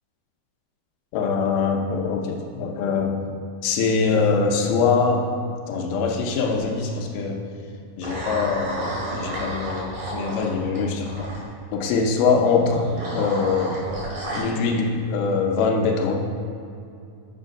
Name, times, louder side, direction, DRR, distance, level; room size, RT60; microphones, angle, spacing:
voice 1, 1.1-3.2 3.6-5.3 5.7-7.4 8.0-11.3 11.7-13.8 14.3-16.2, left 4 dB, 85° left, 2 dB, 2.6 m, -23 dB
sound 1, 6.4-6.8 8.0-11.4 12.6-14.4, right 1 dB, 55° right, 3.2 m, -32 dB
7.1 x 6.4 x 5.2 m, 2.5 s
omnidirectional pair, 4.3 m